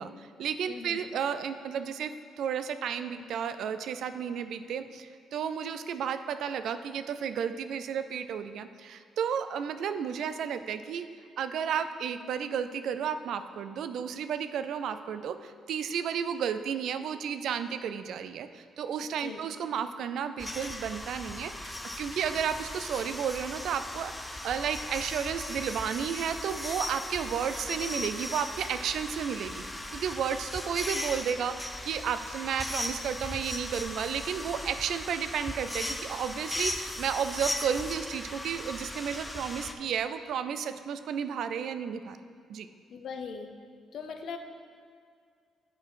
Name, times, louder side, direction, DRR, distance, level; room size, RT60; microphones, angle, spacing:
voice 1, 0.0-2.1 2.4-11.1 11.4-29.6 29.9-42.2 42.5-42.7, right 7 dB, 70° right, 11 dB, 0.3 m, -32 dB
voice 2, 0.7-1.0 19.2-19.4 42.9-43.5 43.9-44.4, left 6 dB, 65° left, 6 dB, 0.6 m, -39 dB
sound 1, 20.4-39.7, left 1 dB, 10° left, 0.5 m, -38 dB
8.8 x 4.1 x 4.7 m, 2.2 s
cardioid pair, 90°, 0 cm